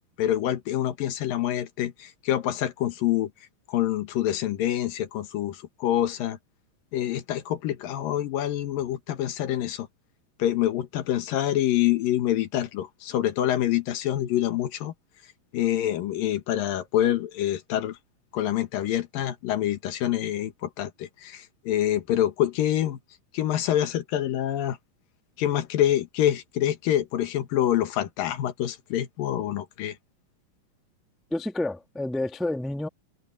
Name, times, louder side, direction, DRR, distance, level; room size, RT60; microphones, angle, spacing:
voice 1, 0.2-3.3 3.7-6.4 6.9-9.9 10.4-14.9 15.5-18.0 18.3-23.0 23.3-24.8 25.4-30.0, left 12 dB, 85° left, 3.1 m, -26 dB
voice 2, 31.3-32.9, left 2 dB, ahead, 0.4 m, -29 dB
omnidirectional pair, 3.9 m